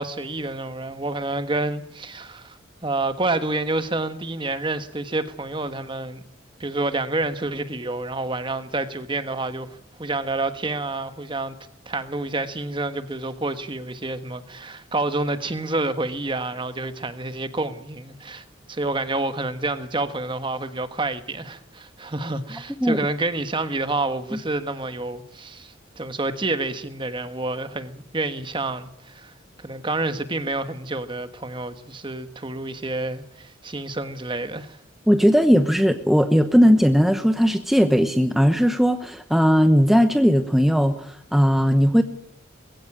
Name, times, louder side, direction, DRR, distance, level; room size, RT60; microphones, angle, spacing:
voice 1, 0.0-6.2 6.6-11.5 11.9-29.3 29.6-34.8, right 2 dB, 25° right, 1.4 m, -28 dB
voice 2, 35.1-42.0, equal, ahead, 0.9 m, -18 dB
21.5 x 16.0 x 9.9 m
head